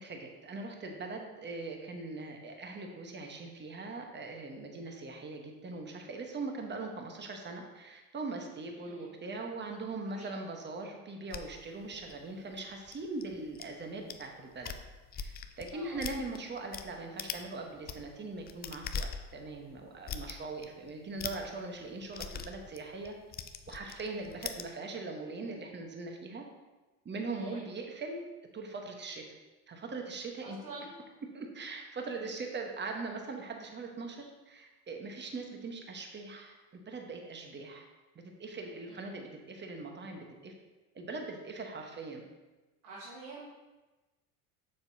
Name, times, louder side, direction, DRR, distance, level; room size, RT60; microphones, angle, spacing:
voice 1, 0.0-14.7 15.1-23.2 23.7-26.4 27.0-28.2 28.5-29.2 29.7-30.6 31.3-37.9 38.1-40.5 40.9-42.2, right 3 dB, 25° right, 3 dB, 1.2 m, -41 dB
voice 2, 8.8-9.1 10.1-10.3 15.7-16.0 27.3-27.7 30.4-31.0 38.9-39.1 42.8-43.4, right 3 dB, 80° right, -6 dB, 1.7 m, -47 dB
sound 1, 11.3-13.7 14.1-14.3 14.5-16.9 17.2-17.5 17.8-24.7, left 6 dB, 25° left, 0.4 m, -41 dB
7.2 x 6.7 x 2.8 m, 1.2 s
hypercardioid pair, 70°, 45 cm